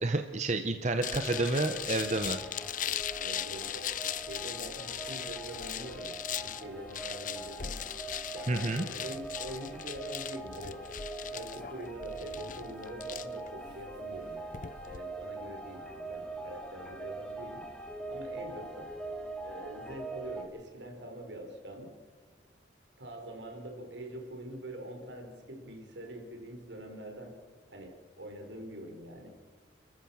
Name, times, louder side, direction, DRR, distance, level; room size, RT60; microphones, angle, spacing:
voice 1, 0.0-2.4 8.5-8.8, right 2 dB, 40° right, 7 dB, 0.9 m, -30 dB
sound 1, 1.0-15.0, left 10 dB, 45° left, 0.6 m, -39 dB
sound 2, 1.0-20.4, right 2 dB, 5° left, 3.0 m, -43 dB
voice 2, 3.2-7.8 8.3-10.8 11.3-17.6 18.1-18.9 19.4-21.9 23.0-27.4 27.7-29.3, right 1 dB, 75° right, 3 dB, 4.6 m, -44 dB
29.5 x 14.0 x 7.2 m, 1.5 s
head